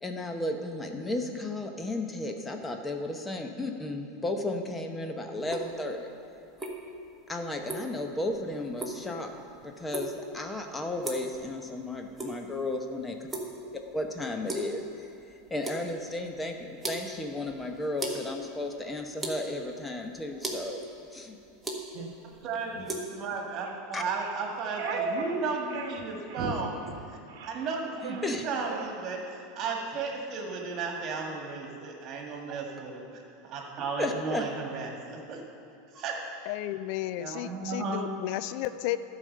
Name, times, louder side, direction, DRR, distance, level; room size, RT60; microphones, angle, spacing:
voice 1, 0.0-6.1 7.3-9.3 9.6-13.2 13.7-15.1 15.5-20.8 21.1-21.4 23.9-24.0 28.0-28.4 34.0-34.4, left 2 dB, 15° left, 4 dB, 0.9 m, -34 dB
sound 1, 5.4-23.0, right 1 dB, 10° right, 1.5 m, -40 dB
sound 2, 21.9-22.1 22.7-22.9 23.6-23.8 24.1-25.4 25.7-26.0 26.3-26.6 26.8-27.0 27.3-27.7 27.9-28.3 28.7-28.9, right 4 dB, 65° right, 1.1 m, -36 dB
voice 2, 22.2-26.8 27.1-35.4 35.9-36.2 37.2-38.0, right 4 dB, 45° right, 1 dB, 1.9 m, -34 dB
voice 3, 36.5-39.0, left 14 dB, 60° left, 13 dB, 0.3 m, -33 dB
12.0 x 5.0 x 6.6 m, 2.8 s
hypercardioid pair, 90°, 0 cm